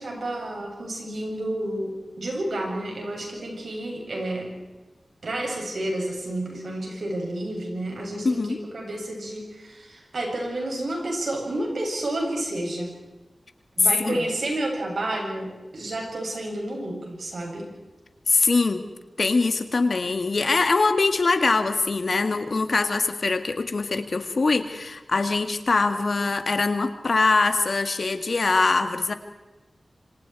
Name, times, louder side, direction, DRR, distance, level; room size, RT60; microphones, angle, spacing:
voice 1, 0.0-4.5 5.2-12.9 13.8-17.7, right 1 dB, 75° right, 0 dB, 7.9 m, -30 dB
voice 2, 8.2-8.6 14.0-14.2 18.3-18.9 19.2-29.1, left 3 dB, 60° left, 8 dB, 1.8 m, -23 dB
27.0 x 26.0 x 4.8 m, 1.1 s
wide cardioid pair, 75°, 0 cm